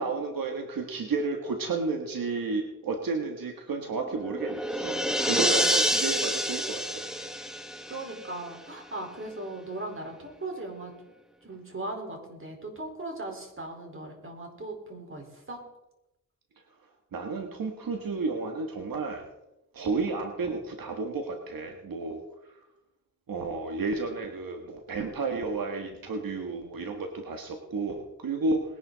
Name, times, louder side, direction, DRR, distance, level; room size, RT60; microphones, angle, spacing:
voice 1, 0.0-5.0 5.2-7.0 17.1-19.2 19.7-22.2 23.3-28.6, right 3 dB, 80° right, 3 dB, 1.6 m, -32 dB
sound 1, 3.9-8.5, equal, ahead, 1.2 m, -28 dB
voice 2, 7.9-10.9 11.4-15.6, right 2 dB, 35° right, 2 dB, 4.4 m, -38 dB
20.5 x 11.0 x 4.1 m, 0.92 s
cardioid pair, 80°, 34 cm